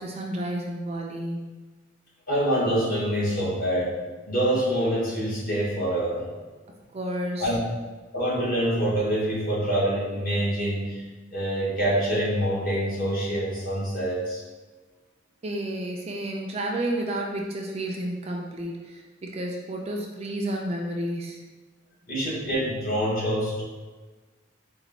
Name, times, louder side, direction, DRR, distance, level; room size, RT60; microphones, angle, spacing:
voice 1, 0.0-1.5 6.9-7.5 15.4-21.4, right 1 dB, 30° right, 0 dB, 0.4 m, -31 dB
voice 2, 2.3-3.9 4.3-6.3 7.4-7.6 8.1-11.0 11.3-14.4 22.1-23.6, right 1 dB, 45° left, -7 dB, 1.4 m, -25 dB
4.2 x 2.3 x 4.0 m, 1.3 s
head